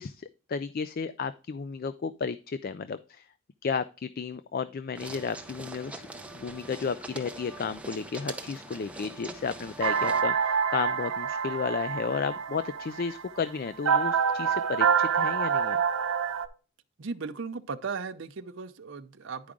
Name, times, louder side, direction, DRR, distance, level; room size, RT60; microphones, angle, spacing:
voice 1, 0.0-3.3 3.6-6.1 6.3-15.8, left 5 dB, 45° left, 0.4 m, -33 dB
sound 1, 4.9-10.2, right 2 dB, 5° right, 0.7 m, -42 dB
sound 2, 9.8-16.5, right 7 dB, 80° right, 0.9 m, -27 dB
voice 2, 17.0-19.5, right 5 dB, 60° right, 0.6 m, -36 dB
10.5 x 4.8 x 3.6 m
head